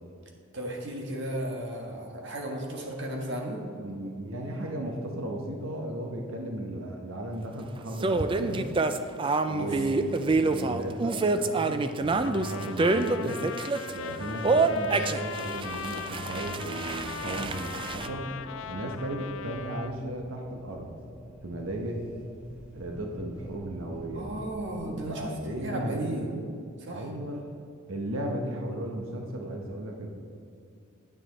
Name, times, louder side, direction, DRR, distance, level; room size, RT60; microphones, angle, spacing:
voice 1, 0.5-3.6 9.6-9.8 24.1-25.3 25.6-26.2 26.8-27.0, right 1 dB, 60° right, 0 dB, 1.6 m, -34 dB
voice 2, 3.8-8.6 9.4-13.4 13.9-18.3 18.7-20.9 21.4-22.0 22.7-24.4 24.9-26.5 26.9-27.5 27.9-30.1, right 1 dB, 75° right, 1 dB, 1.1 m, -35 dB
sound 1, 8.0-13.9 14.4-18.1, right 3 dB, 25° right, 0.3 m, -27 dB
Trumpet, 12.2-19.9, left 7 dB, 65° left, 0.4 m, -39 dB
sound 2, 14.1-25.1, equal, 5° right, 1.3 m, -48 dB
9.4 x 9.3 x 4.1 m, 2.5 s
head